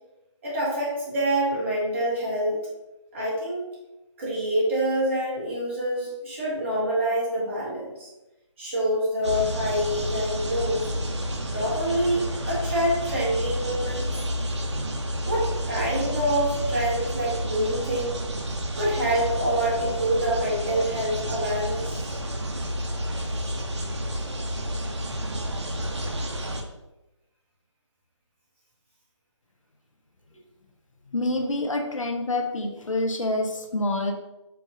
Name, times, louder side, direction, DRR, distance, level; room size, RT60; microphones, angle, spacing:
voice 1, 0.4-2.6 3.1-3.6 4.2-8.1 8.6-11.0 11.5-14.2 15.2-18.2 18.8-22.2 26.1-26.2, right 1 dB, 25° right, -7 dB, 1.4 m, -26 dB
sound 1, 9.2-26.6, equal, 65° right, 0.7 m, -30 dB
voice 2, 31.1-34.1, left 2 dB, 85° left, 3 dB, 0.8 m, -27 dB
4.6 x 2.4 x 3.8 m, 0.98 s
figure-of-eight pair, 165°, 16 cm